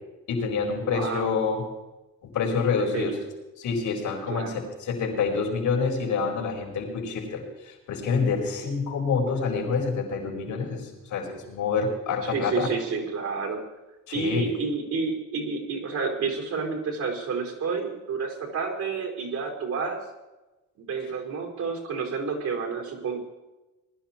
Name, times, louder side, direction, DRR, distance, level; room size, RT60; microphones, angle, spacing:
voice 1, 0.3-1.6 2.2-3.2 3.6-12.7 14.1-14.5, left 5 dB, 85° left, 0 dB, 4.7 m, -27 dB
voice 2, 0.8-1.3 2.7-3.1 4.3-4.7 12.2-13.6 14.1-20.0 20.8-23.2, right 5 dB, 70° right, 2 dB, 4.8 m, -30 dB
20.5 x 12.0 x 4.5 m, 1.1 s
cardioid pair, 90°, 30 cm